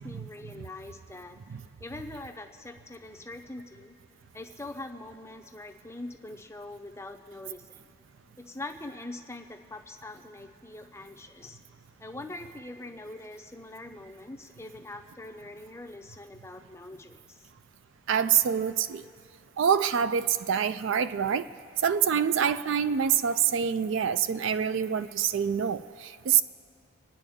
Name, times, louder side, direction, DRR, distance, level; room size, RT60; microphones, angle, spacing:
voice 1, 0.0-1.4 1.8-3.9 4.3-7.9 8.4-11.6 12.0-17.5, left 2 dB, 10° left, 6 dB, 0.6 m, -43 dB
voice 2, 18.1-19.0 19.6-21.5 21.8-26.4, right 8 dB, 55° right, 12 dB, 0.3 m, -26 dB
29.0 x 9.9 x 3.6 m, 2.4 s
head